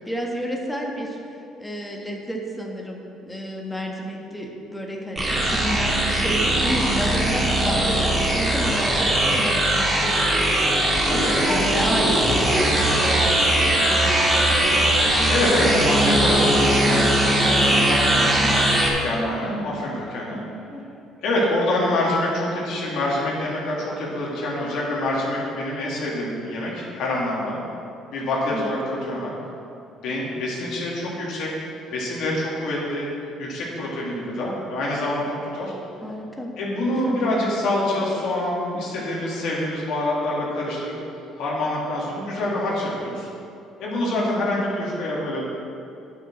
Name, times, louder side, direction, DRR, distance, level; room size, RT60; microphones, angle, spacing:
voice 1, 0.0-1.2 1.6-10.3 11.3-14.9 18.4-18.7 20.7-20.8 28.5-28.7 36.0-36.5 36.9-37.1 44.1-44.5, equal, 5° left, 0 dB, 1.5 m, -31 dB
sound 1, 5.2-18.9, right 1 dB, 20° right, 2.2 m, -20 dB
voice 2, 11.0-11.7 12.8-13.0 15.3-18.7 19.0-20.4 21.2-27.6 28.1-29.3 30.0-31.5 31.9-33.1 33.4-35.7 36.6-41.0 41.4-43.3 43.8-45.4, left 1 dB, 70° left, -5 dB, 2.6 m, -26 dB
9.1 x 6.9 x 6.2 m, 2.7 s
cardioid pair, 100°, 0 cm